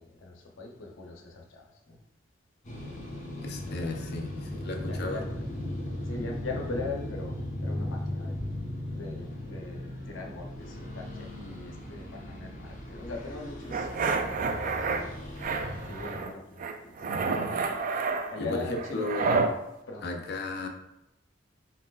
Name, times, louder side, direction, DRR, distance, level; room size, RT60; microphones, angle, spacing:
voice 1, 0.0-2.0 3.7-4.0 4.9-5.2 6.0-8.5 8.9-14.2 14.7-15.3 15.8-17.0 18.3-19.4 19.9-20.0, left 3 dB, 90° left, 1 dB, 0.8 m, -41 dB
sound 1, 2.6-16.1, left 1 dB, 40° left, 1.1 m, -37 dB
voice 2, 3.4-5.2 17.0-17.4 18.4-19.5 20.0-20.7, left 2 dB, 60° left, 3 dB, 0.5 m, -35 dB
sound 2, 13.7-15.0 15.4-16.3 16.6-19.5, right 4 dB, 45° right, 0.4 m, -29 dB
4.4 x 3.9 x 2.4 m, 0.87 s
head